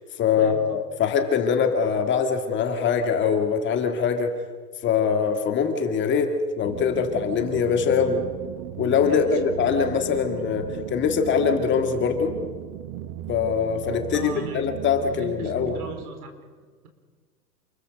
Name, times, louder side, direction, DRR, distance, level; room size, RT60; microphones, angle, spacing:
voice 1, 0.2-4.3 4.8-8.2 8.8-12.3 13.3-15.8, left 6 dB, 25° left, 6 dB, 2.0 m, -23 dB
sound 1, 6.6-16.1, right 12 dB, 30° right, 1.0 m, -36 dB
voice 2, 9.1-9.4 14.1-14.7 15.2-16.5, right 5 dB, 60° right, 6 dB, 4.4 m, -39 dB
29.0 x 21.5 x 5.2 m, 1.5 s
figure-of-eight pair, 110°, 49 cm